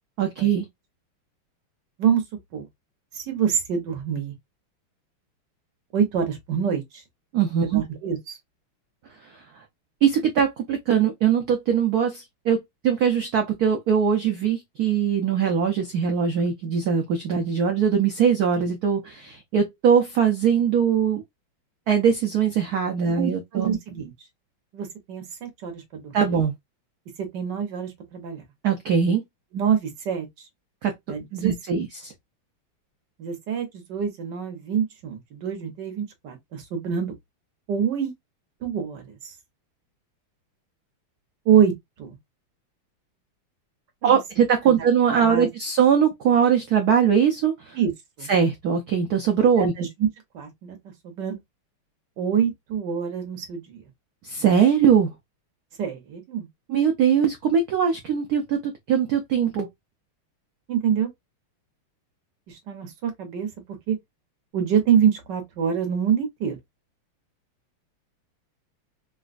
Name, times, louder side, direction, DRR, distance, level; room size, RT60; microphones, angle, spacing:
voice 1, 0.2-0.6 7.3-7.8 9.3-9.4 10.0-21.2 21.9-23.8 26.1-26.5 28.6-29.2 30.8-30.9 31.3-32.1 44.0-47.8 48.3-49.7 54.2-55.1 56.7-59.7, right 7 dB, 90° right, 0.8 m, -21 dB
voice 2, 3.1-4.3 5.9-6.8 7.6-8.4 23.0-24.1 24.7-26.4 27.2-28.4 29.5-30.3 31.1-31.5 33.2-37.1 37.7-38.1 38.6-39.0 41.4-41.7 42.0-42.2 44.0-44.1 44.7-44.8 45.1-45.5 47.8-47.9 48.2-48.3 49.6-50.1 50.3-50.8 51.0-51.4 52.2-53.8 55.8-56.5 60.7-61.1 62.5-63.5 63.9-64.0 64.5-66.6, right 8 dB, 60° right, 1.5 m, -25 dB
4.0 x 2.3 x 2.4 m
omnidirectional pair, 2.4 m